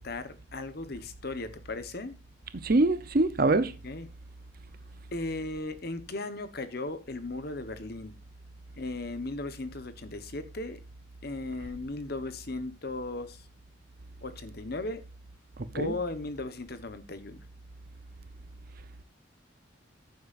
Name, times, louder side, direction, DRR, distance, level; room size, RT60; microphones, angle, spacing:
voice 1, 0.0-2.2 3.6-4.1 5.1-8.1 8.8-10.8 11.2-13.4 14.2-15.0 15.7-17.4, left 2 dB, 55° left, 1.2 m, -37 dB
voice 2, 2.5-3.7 15.6-15.9, right 2 dB, 50° right, 0.8 m, -24 dB
14.5 x 7.8 x 2.6 m
head